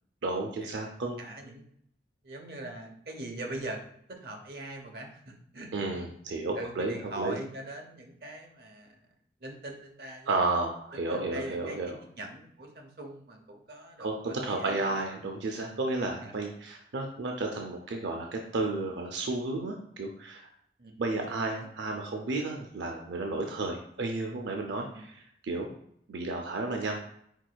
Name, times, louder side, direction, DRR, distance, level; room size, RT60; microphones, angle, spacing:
voice 1, 0.2-1.2 5.7-7.4 10.3-12.0 14.0-20.5 21.0-25.1 25.4-25.7 26.1-27.0, right 2 dB, 85° right, 2 dB, 0.5 m, -32 dB
voice 2, 1.2-1.7 2.2-3.8 4.1-5.9 6.6-9.0 9.4-10.3 10.9-15.0 16.2-16.3 20.8-20.9 21.3-22.0 24.9-25.0, right 1 dB, 60° right, 2 dB, 0.8 m, -42 dB
4.6 x 4.2 x 2.3 m, 0.69 s
head